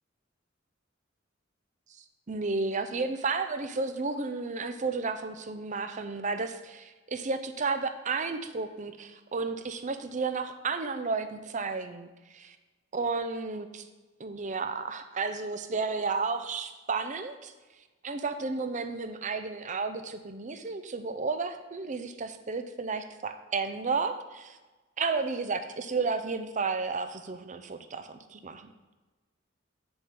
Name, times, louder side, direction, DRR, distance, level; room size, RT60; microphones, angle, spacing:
voice 1, 2.3-12.6 12.9-13.8 14.2-17.5 18.0-24.6 25.0-28.7, right 4 dB, 40° right, 9 dB, 0.6 m, -32 dB
8.6 x 7.0 x 3.6 m, 1.2 s
head